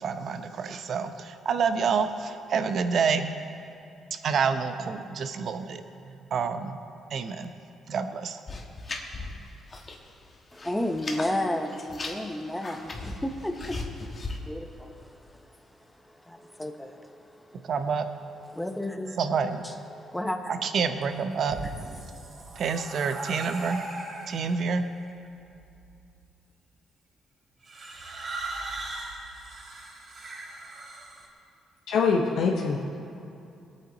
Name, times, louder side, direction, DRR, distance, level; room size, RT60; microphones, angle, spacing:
voice 1, 0.0-3.4 4.1-6.8 7.1-7.5 7.9-8.4 17.6-18.1 19.2-19.6 20.5-21.6 22.6-23.9 24.3-24.9, right 5 dB, 60° right, 9 dB, 0.8 m, -28 dB
sound 1, 8.5-10.1 10.3-11.3 11.7-14.4, left 3 dB, 35° left, 1.5 m, -37 dB
voice 2, 10.5-17.7 18.5-19.2 19.6-20.6, left 1 dB, 5° left, 5 dB, 1.0 m, -33 dB
sound 2, 21.3-24.7 25.6-26.1 27.6-31.3, right 2 dB, 45° right, 3.0 m, -39 dB
voice 3, 31.9-32.8, left 5 dB, 80° left, -1 dB, 1.0 m, -23 dB
19.5 x 8.8 x 4.0 m, 2.7 s
cardioid pair, 90°, 0 cm